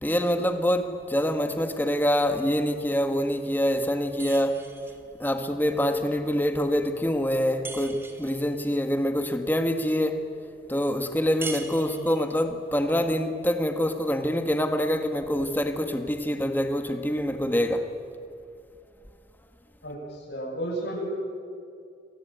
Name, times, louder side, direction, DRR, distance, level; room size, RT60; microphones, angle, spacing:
voice 1, 0.0-4.6 5.2-10.2 10.7-17.9, equal, 10° left, 1.8 m, -25 dB
sound 1, 4.2-5.0 7.6-8.4 11.4-12.3, right 3 dB, 10° right, 1.9 m, -39 dB
voice 2, 11.7-12.1 19.8-21.1, right 1 dB, 70° left, 8.0 m, -33 dB
28.0 x 23.0 x 9.2 m
head